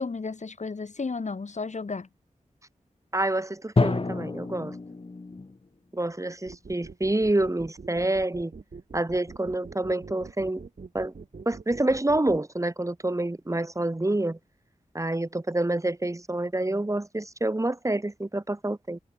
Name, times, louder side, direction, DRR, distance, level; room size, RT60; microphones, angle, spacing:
voice 1, 0.0-2.1, left 4 dB, 55° left, 2.2 m, -33 dB
voice 2, 3.1-4.8 5.9-8.5 8.9-10.6 10.9-11.1 11.5-14.4 14.9-19.0, right 2 dB, 20° right, 2.4 m, -27 dB
Drum, 3.8-5.7, left 3 dB, 40° left, 2.0 m, -28 dB
sound 1, 6.5-12.4, right 4 dB, 70° right, 7.9 m, -44 dB
wide cardioid pair, 70°, 14 cm